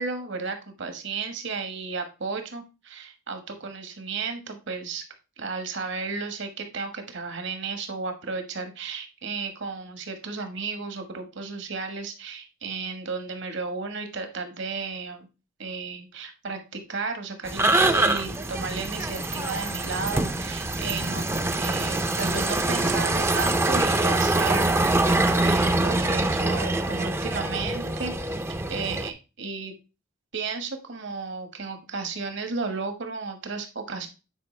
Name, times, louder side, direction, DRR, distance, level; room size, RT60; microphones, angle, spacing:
voice 1, 0.0-5.0 5.4-15.3 15.6-21.3 21.5-28.4 28.7-29.7 30.3-34.1, right 4 dB, 60° right, 6 dB, 1.3 m, -33 dB
sound 1, 17.4-29.1, right 2 dB, 10° right, 0.5 m, -24 dB
9.0 x 4.4 x 3.2 m, 0.30 s
head